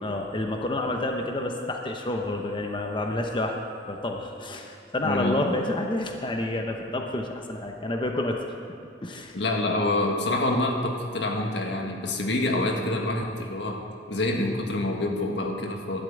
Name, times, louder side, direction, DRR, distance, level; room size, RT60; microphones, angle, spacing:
voice 1, 0.0-3.6 3.9-8.4 9.0-9.3, left 2 dB, 30° left, 2 dB, 0.9 m, -29 dB
voice 2, 5.0-5.4 9.3-13.8 14.1-16.0, left 2 dB, 85° left, 2 dB, 1.6 m, -27 dB
11.5 x 7.5 x 8.7 m, 2.4 s
head